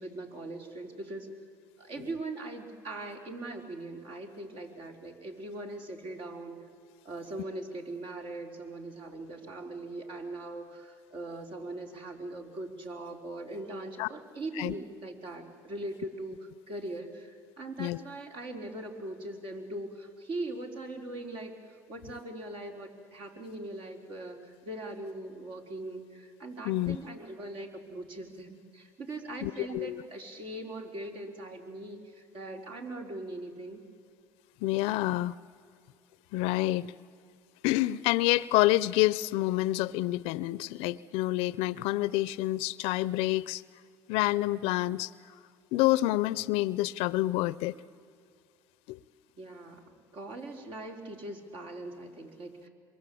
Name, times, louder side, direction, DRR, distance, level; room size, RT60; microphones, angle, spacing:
voice 1, 0.0-1.4 1.8-6.6 7.0-33.8 49.4-52.7, right 2 dB, 60° right, 3 dB, 4.2 m, -41 dB
voice 2, 26.6-27.0 29.4-30.0 34.6-35.3 36.3-36.9 37.6-43.6 44.1-45.1 45.7-47.7 48.9-49.0, left 17 dB, 75° left, 19 dB, 0.6 m, -28 dB
27.0 x 22.5 x 8.6 m, 2.3 s
supercardioid pair, 90°, 10 cm